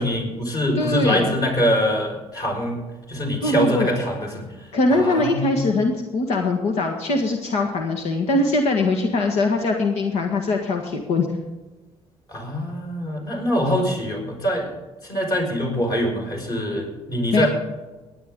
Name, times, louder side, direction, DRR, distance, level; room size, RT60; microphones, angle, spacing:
voice 1, 0.0-2.8 3.1-4.5 4.9-5.6 12.3-14.7 15.0-17.5, equal, 35° left, 1 dB, 5.3 m, -24 dB
voice 2, 0.8-1.3 3.4-3.9 4.7-11.3 17.3-17.5, left 2 dB, 75° left, 2 dB, 1.7 m, -22 dB
18.0 x 10.5 x 3.8 m, 1.2 s
cardioid pair, 130°, 11 cm